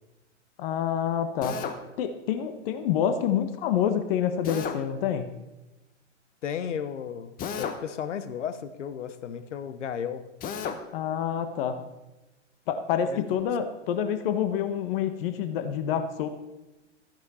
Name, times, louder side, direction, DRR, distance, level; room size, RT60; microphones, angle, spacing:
voice 1, 0.6-1.6 2.0-5.3 10.9-11.8 12.7-16.3, left 8 dB, 50° left, 10 dB, 1.2 m, -27 dB
Drill, 1.4-1.8 4.4-4.8 7.4-7.8 10.4-10.8, left 7 dB, 25° left, 1.0 m, -33 dB
voice 2, 6.4-10.2 13.0-13.2, left 8 dB, 75° left, 12 dB, 1.1 m, -34 dB
13.5 x 10.5 x 4.2 m, 1.0 s
hypercardioid pair, 120°, 36 cm